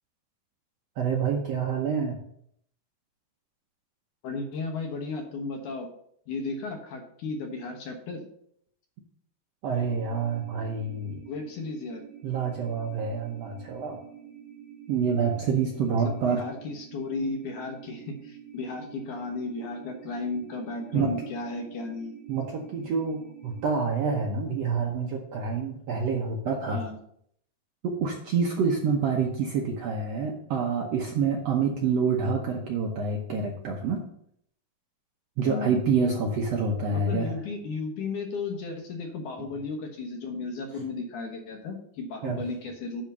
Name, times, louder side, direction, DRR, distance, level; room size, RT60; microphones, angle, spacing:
voice 1, 1.0-2.2 9.6-11.3 12.2-14.0 14.9-16.4 20.9-21.1 22.3-26.8 27.8-34.0 35.4-37.3 42.2-42.4, right 5 dB, 80° right, 1 dB, 1.4 m, -27 dB
voice 2, 4.2-5.9 6.3-8.2 11.3-12.0 16.3-22.1 26.6-27.0 35.4-35.7 36.9-43.0, left 3 dB, 65° left, 3 dB, 2.4 m, -34 dB
sound 1, 9.7-23.7, right 9 dB, 50° right, 1.6 m, -47 dB
10.0 x 3.6 x 6.6 m, 0.68 s
omnidirectional pair, 4.2 m